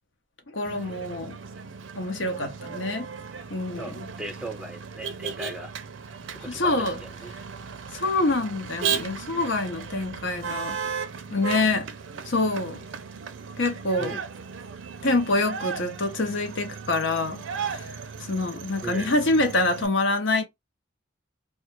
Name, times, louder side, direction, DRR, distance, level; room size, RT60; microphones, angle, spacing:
voice 1, 0.5-1.4 1.9-3.1 3.5-4.0 6.5-7.0 7.9-10.8 11.3-11.9 12.2-12.8 13.6-14.2 15.0-17.9 18.2-20.4, left 2 dB, 75° left, 0.8 m, -26 dB
Motor vehicle (road), 0.6-19.9, right 6 dB, 85° right, 0.5 m, -36 dB
voice 2, 3.8-5.7 6.3-7.3 14.0-14.2 18.8-19.1, right 1 dB, 5° right, 0.4 m, -38 dB
2.4 x 2.3 x 2.9 m
head